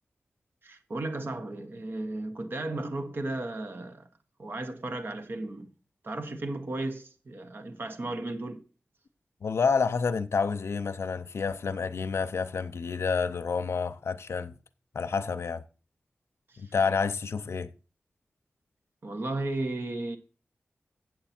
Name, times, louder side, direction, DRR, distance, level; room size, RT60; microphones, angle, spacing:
voice 1, 0.6-4.1 4.4-5.7 6.0-8.6 16.5-16.7 19.0-20.2, right 2 dB, 55° right, 1.2 m, -35 dB
voice 2, 9.4-14.5 14.9-15.6 16.6-17.7, left 5 dB, 85° left, 0.6 m, -29 dB
8.1 x 7.7 x 4.3 m
wide cardioid pair, 110°, 4 cm